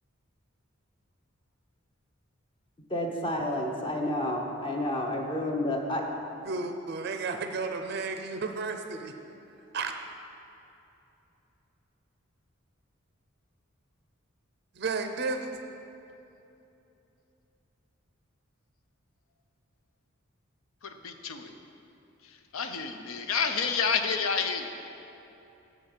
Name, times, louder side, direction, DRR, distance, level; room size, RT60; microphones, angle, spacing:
voice 1, 2.9-6.0, left 1 dB, 25° left, 2 dB, 0.8 m, -30 dB
voice 2, 6.5-9.1 9.7-10.0 14.7-15.5, right 4 dB, 50° right, 6 dB, 0.4 m, -32 dB
voice 3, 20.8-21.5 22.2-24.7, left 6 dB, 80° left, 7 dB, 0.6 m, -30 dB
8.0 x 5.1 x 7.2 m, 2.9 s
head